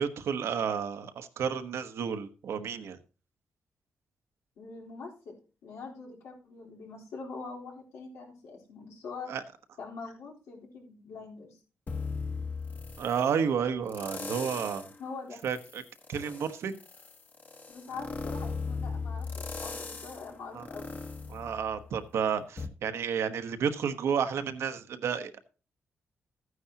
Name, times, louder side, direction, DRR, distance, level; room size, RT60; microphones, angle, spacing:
voice 1, 0.0-3.0 9.3-9.4 13.0-14.8 15.4-15.8 16.1-16.8 20.5-20.7 21.3-25.4, right 7 dB, 75° right, 9 dB, 1.1 m, -31 dB
voice 2, 4.6-5.3 5.6-9.3 9.8-11.6 15.0-15.4 17.7-20.9, left 4 dB, 90° left, -2 dB, 4.1 m, -43 dB
sound 1, 11.9-13.3 13.9-15.0 15.4-22.1 22.6-22.7, left 4 dB, 40° left, 1.4 m, -38 dB
14.0 x 9.5 x 2.9 m, 0.35 s
cardioid pair, 105°, 5 cm